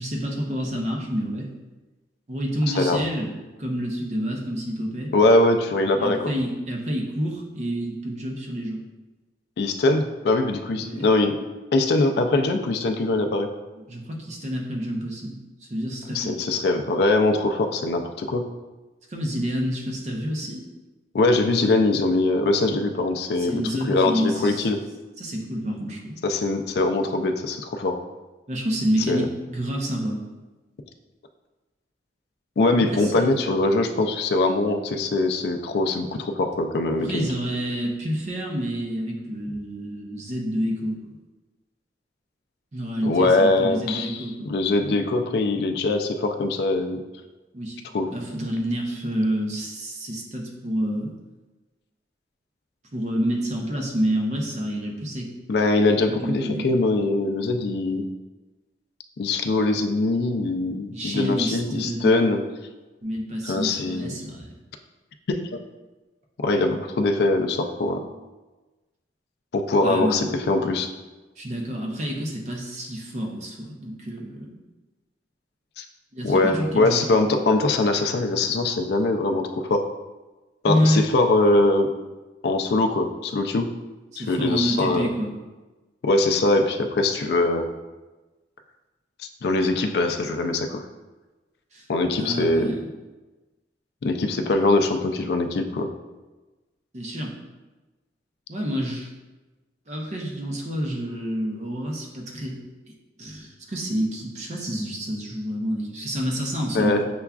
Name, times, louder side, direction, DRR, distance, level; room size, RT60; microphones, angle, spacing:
voice 1, 0.0-1.5 2.3-3.3 3.6-5.1 6.0-8.8 10.7-11.1 13.8-15.4 15.7-16.4 19.1-20.6 23.4-24.7 25.2-26.2 28.5-30.2 32.9-33.3 37.0-41.0 42.7-44.5 47.5-47.8 48.1-51.1 52.9-55.3 56.1-56.8 60.9-62.2 63.0-64.5 69.8-70.3 71.4-74.6 76.1-77.5 80.6-81.0 84.1-85.3 91.7-91.9 92.2-92.8 96.9-97.3 98.5-99.1 99.9-102.6 103.2-107.1, equal, 40° right, 0 dB, 0.5 m, -28 dB
voice 2, 2.7-3.0 5.1-6.3 9.6-11.4 11.7-13.5 16.1-18.5 21.1-23.6 23.9-24.8 26.2-28.0 29.1-29.3 32.6-37.3 43.0-44.2 44.5-47.0 47.9-48.1 55.5-58.1 59.2-62.4 63.4-64.1 65.3-65.6 66.4-68.1 69.5-70.9 75.8-75.9 76.2-79.8 80.6-81.9 82.4-83.7 84.2-85.1 86.0-87.7 89.4-90.9 91.9-92.8 94.0-95.9 106.7-107.0, left 2 dB, 60° left, 6 dB, 0.3 m, -22 dB
6.7 x 2.3 x 2.3 m, 1.2 s
head